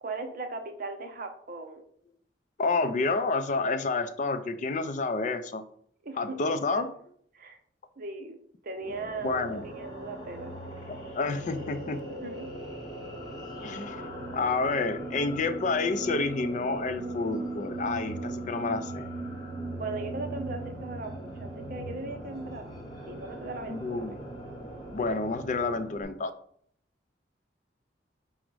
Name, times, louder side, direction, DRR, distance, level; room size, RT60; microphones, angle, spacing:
voice 1, 0.0-1.8 6.0-6.8 7.3-7.6 8.0-8.4 8.6-10.6 12.2-12.5 19.7-22.7 23.1-24.2, right 3 dB, 55° right, 6 dB, 0.6 m, -38 dB
voice 2, 2.6-5.6 6.2-6.9 9.2-9.7 10.9-12.0 13.6-14.0 14.3-19.1 23.7-24.3 24.9-26.3, left 3 dB, 45° left, 10 dB, 0.4 m, -29 dB
sound 1, 8.7-26.0, right 1 dB, 25° left, 0.9 m, -39 dB
5.0 x 2.1 x 4.6 m, 0.64 s
head